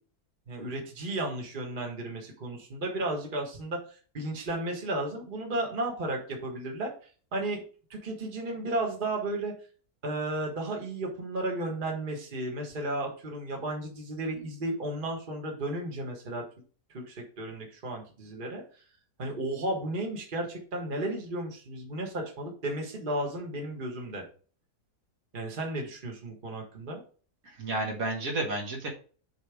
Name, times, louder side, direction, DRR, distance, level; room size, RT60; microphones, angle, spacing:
voice 1, 0.5-7.6 7.9-9.5 10.0-16.4 16.9-18.8 19.2-24.2 25.3-27.0, right 1 dB, 35° right, 1 dB, 1.5 m, -34 dB
voice 2, 27.4-28.9, right 2 dB, 60° right, 0 dB, 1.9 m, -31 dB
7.4 x 3.4 x 4.8 m, 0.40 s
omnidirectional pair, 1.7 m